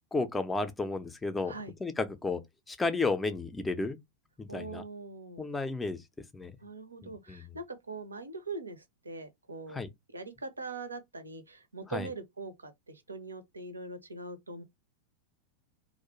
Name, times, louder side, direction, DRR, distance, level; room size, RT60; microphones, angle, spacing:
voice 1, 0.1-1.5 1.8-2.4 2.7-4.0 4.4-4.8 5.4-6.0 6.3-6.5 7.0-7.5 9.7-9.9 11.9-12.1, left 3 dB, 10° left, 0.4 m, -32 dB
voice 2, 4.5-5.5 6.6-9.8 10.1-14.6, right 3 dB, 80° right, 0.5 m, -42 dB
2.4 x 2.1 x 2.8 m
figure-of-eight pair, 90°, 0 cm